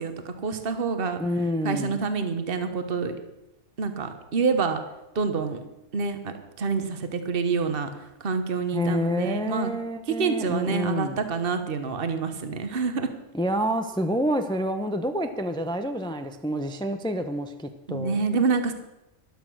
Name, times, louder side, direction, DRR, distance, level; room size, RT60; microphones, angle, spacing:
voice 1, 0.0-1.2 1.6-3.1 3.8-4.8 5.1-5.6 5.9-7.9 8.2-9.7 10.1-13.1 17.9-18.7, right 5 dB, 50° right, 8 dB, 1.4 m, -27 dB
voice 2, 1.2-2.0 8.7-11.2 13.3-18.2, equal, 5° left, 7 dB, 0.7 m, -28 dB
12.5 x 12.0 x 6.3 m, 0.93 s
omnidirectional pair, 1.3 m